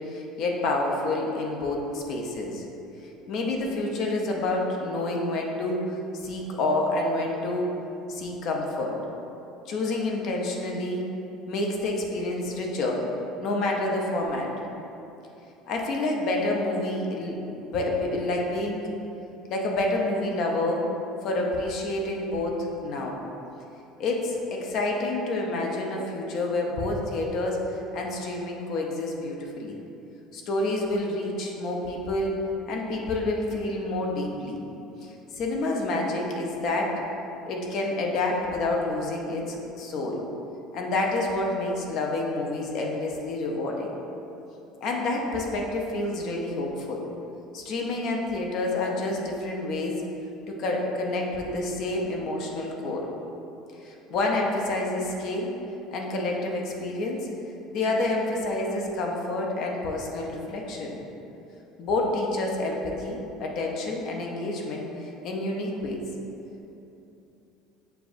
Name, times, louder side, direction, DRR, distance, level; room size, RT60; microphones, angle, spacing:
voice 1, 0.0-2.6 3.3-5.8 6.2-7.7 8.1-9.0 9.7-11.1 11.5-13.0 13.4-14.5 15.7-18.9 19.5-20.9 21.2-23.2 24.0-29.8 30.3-34.6 35.0-36.9 37.4-40.2 40.7-43.9 44.8-47.0 47.5-50.0 50.5-53.1 53.8-55.5 55.9-57.3 57.7-60.9 61.8-66.0, left 2 dB, 60° left, 0 dB, 0.6 m, -28 dB
6.8 x 2.4 x 2.6 m, 2.9 s
hypercardioid pair, 80°, 0 cm